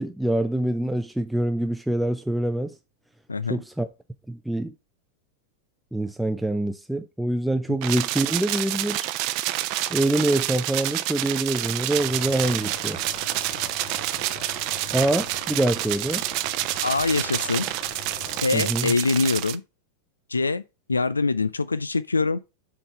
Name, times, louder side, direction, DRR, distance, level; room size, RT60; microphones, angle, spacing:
voice 1, 0.0-2.8 3.5-3.9 4.3-4.7 5.9-9.1 9.9-13.0 14.9-16.2 18.5-18.9, right 1 dB, ahead, 0.5 m, -25 dB
sound 1, 7.8-19.6, right 16 dB, 45° right, 0.6 m, -28 dB
sound 2, 11.9-18.4, left 4 dB, 50° left, 4.3 m, -42 dB
voice 2, 16.8-17.7 18.4-19.6 20.3-20.6 20.9-22.4, left 3 dB, 80° left, 0.4 m, -24 dB
7.6 x 3.9 x 5.5 m
figure-of-eight pair, 90°, 0 cm